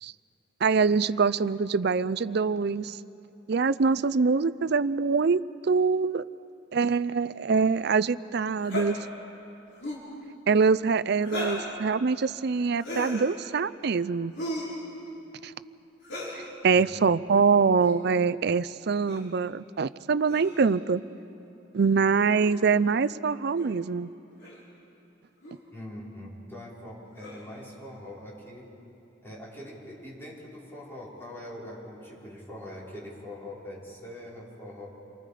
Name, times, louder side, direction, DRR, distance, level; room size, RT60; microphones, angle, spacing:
voice 1, 0.6-3.0 3.5-6.2 6.7-9.0 10.5-14.3 15.4-15.5 16.3-21.0 21.7-24.1, right 5 dB, 55° right, 15 dB, 0.5 m, -24 dB
sound 1, 8.6-8.9 9.7-10.1 11.2-11.7 12.8-13.3 14.4-14.8 16.0-16.4 17.7-18.0 19.1-19.3 20.3-20.7 22.4-22.5 23.6-23.7 24.4-24.6 25.4-25.6 27.2-27.5, left 1 dB, 65° left, 5.3 m, -36 dB
voice 2, 16.7-17.0 25.7-28.7 29.2-34.9, left 1 dB, 10° left, -6 dB, 4.9 m, -43 dB
29.0 x 23.5 x 5.0 m, 2.9 s
head